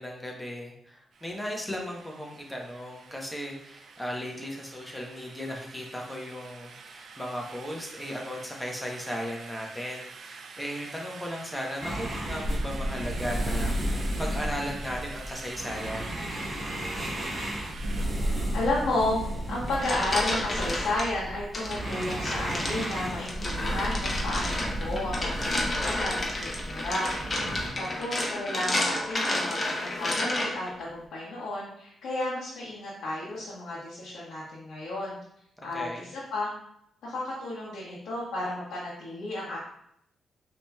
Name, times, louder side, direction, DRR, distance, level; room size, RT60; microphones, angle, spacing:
voice 1, 0.0-16.2 27.6-28.1 35.7-36.1, equal, 10° left, -1 dB, 0.9 m, -36 dB
sound 1, 1.1-18.1, right 5 dB, 65° right, 0.4 m, -47 dB
sound 2, 11.8-27.7, right 1 dB, 35° right, 1.1 m, -33 dB
voice 2, 18.5-19.2 19.5-27.1 27.8-35.2 35.6-36.5 37.0-39.6, left 2 dB, 90° left, -7 dB, 1.1 m, -32 dB
sound 3, 19.5-21.1 21.5-30.7, left 1 dB, 35° left, 0.8 m, -31 dB
4.9 x 2.9 x 2.3 m, 0.73 s
cardioid pair, 85°, 0 cm